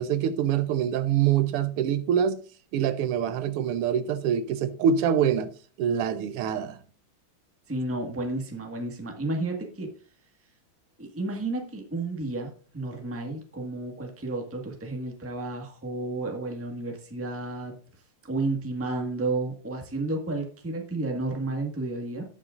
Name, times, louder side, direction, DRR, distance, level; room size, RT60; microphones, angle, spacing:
voice 1, 0.0-2.4 2.7-5.5 5.8-6.8, right 8 dB, 85° right, 1.7 m, -25 dB
voice 2, 7.7-9.9 11.0-17.7 18.2-22.2, right 2 dB, 5° right, 1.2 m, -32 dB
17.5 x 6.1 x 2.5 m
omnidirectional pair, 2.4 m